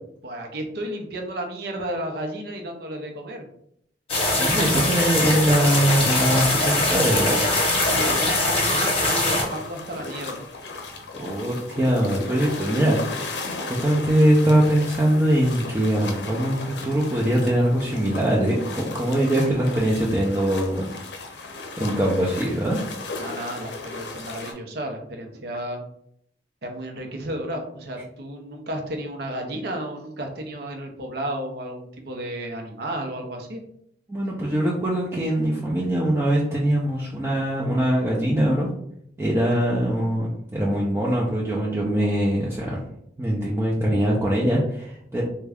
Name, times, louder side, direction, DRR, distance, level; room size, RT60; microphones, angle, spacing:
voice 1, 0.2-3.4 7.8-10.5 23.1-25.8 26.6-33.6, right 1 dB, 65° right, 2 dB, 0.7 m, -33 dB
sound 1, 4.1-9.4, left 2 dB, 35° left, 0.9 m, -22 dB
voice 2, 4.4-7.5 11.1-20.8 21.8-22.8 34.1-38.7 39.2-42.8 43.2-45.2, right 1 dB, 15° right, -5 dB, 0.5 m, -22 dB
sound 2, 5.9-24.5, left 3 dB, 75° left, 0.6 m, -35 dB
3.5 x 2.2 x 3.4 m, 0.71 s
head